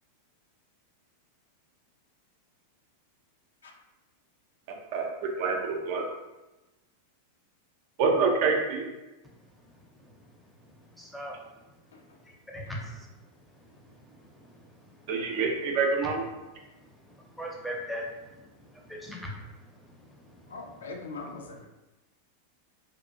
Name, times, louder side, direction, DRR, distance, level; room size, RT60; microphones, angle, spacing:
voice 1, 4.9-6.1 8.0-8.9 15.1-16.2, right 4 dB, 45° right, 2 dB, 0.4 m, -26 dB
voice 2, 10.9-11.4 12.5-13.1 13.6-13.7 14.0-14.7 16.8-19.4 19.8-20.5, equal, 5° left, -2 dB, 0.6 m, -40 dB
voice 3, 20.5-21.6, left 3 dB, 65° left, 2 dB, 0.3 m, -41 dB
2.6 x 2.3 x 2.5 m, 1.1 s
figure-of-eight pair, 90°, 0 cm